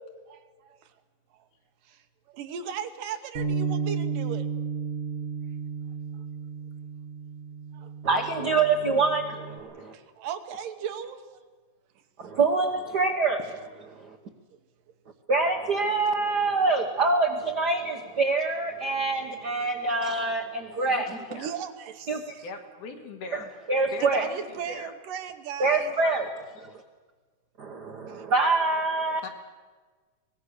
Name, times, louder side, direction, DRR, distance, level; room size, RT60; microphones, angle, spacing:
voice 1, 0.3-0.9 1.3-1.4 1.8-4.5 6.1-6.2 7.7-7.9 9.9-11.4 14.5-14.6 20.0-20.2 21.3-22.5 24.0-25.9 28.1-28.3, right 8 dB, 85° right, 7 dB, 2.9 m, -37 dB
Bass guitar, 3.3-9.6, right 5 dB, 30° right, 1.1 m, -33 dB
voice 2, 8.0-9.9 12.2-13.4 13.9-14.2 15.3-21.2 22.1-22.2 23.3-23.4 23.7-24.2 25.6-26.7 27.6-29.2, right 3 dB, 60° right, 4 dB, 1.0 m, -25 dB
voice 3, 20.9-21.5 22.4-23.5 23.9-24.4 24.7-24.9 29.2-29.3, left 3 dB, 70° left, 3 dB, 3.7 m, -40 dB
24.0 x 19.5 x 6.8 m, 1.4 s
omnidirectional pair, 3.8 m